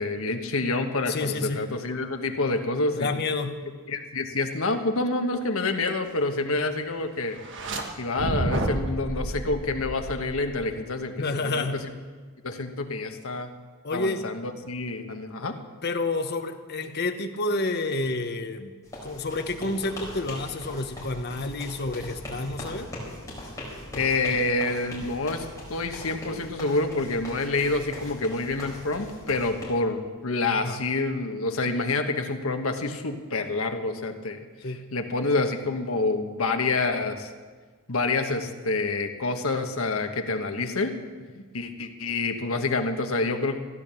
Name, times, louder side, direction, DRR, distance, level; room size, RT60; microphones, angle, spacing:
voice 1, 0.0-3.1 3.9-7.4 8.0-11.9 12.4-13.5 13.9-15.6 23.9-37.3 37.9-41.0 41.5-43.6, left 3 dB, 65° left, 5 dB, 1.3 m, -27 dB
voice 2, 1.1-1.6 3.0-3.6 11.2-11.8 13.8-14.2 15.8-18.7 19.0-22.9 30.5-30.8 34.6-34.9 41.4-41.5, left 2 dB, 50° left, 7 dB, 1.0 m, -29 dB
sound 1, 7.4-7.8 8.2-10.7, right 1 dB, 55° right, 1.5 m, -30 dB
sound 2, 18.8-29.6, left 1 dB, 15° left, 4.5 m, -40 dB
15.0 x 10.5 x 7.0 m, 1.5 s
head